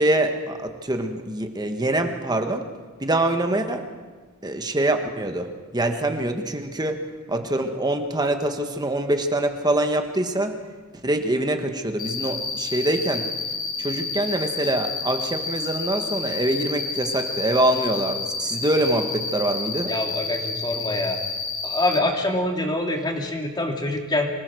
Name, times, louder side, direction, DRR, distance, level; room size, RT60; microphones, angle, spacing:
voice 1, 0.0-2.7 3.0-3.9 4.4-7.0 7.3-10.5 10.9-13.2 13.8-19.9, right 1 dB, 20° right, 6 dB, 1.4 m, -24 dB
Cricket, 12.0-22.0, left 4 dB, 40° left, 2.0 m, -30 dB
voice 2, 19.9-21.2 21.6-24.3, left 1 dB, 20° left, 2 dB, 2.6 m, -25 dB
25.5 x 19.0 x 6.3 m, 1.4 s
head